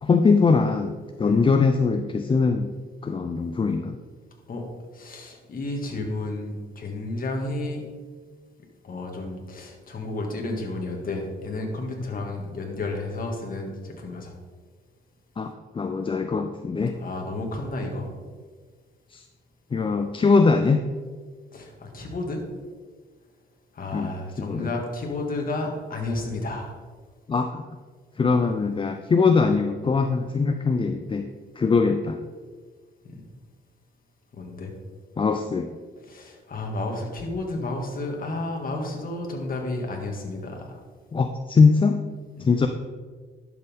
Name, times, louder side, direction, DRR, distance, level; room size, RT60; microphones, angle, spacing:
voice 1, 0.0-2.7 3.0-4.0 15.4-17.0 19.1-19.2 19.7-20.9 23.9-24.1 24.4-24.7 27.3-27.6 28.2-31.3 31.6-32.2 35.2-35.7 41.1-42.0 42.4-42.7, left 4 dB, 25° left, 7 dB, 0.5 m, -22 dB
voice 2, 4.9-7.8 8.8-14.3 17.0-18.1 21.5-22.4 23.7-26.7 33.0-33.2 34.3-34.7 36.0-40.8 42.4-42.5, left 2 dB, 45° left, 1 dB, 2.2 m, -32 dB
11.5 x 7.0 x 3.7 m, 1.5 s
cardioid pair, 90°, 20 cm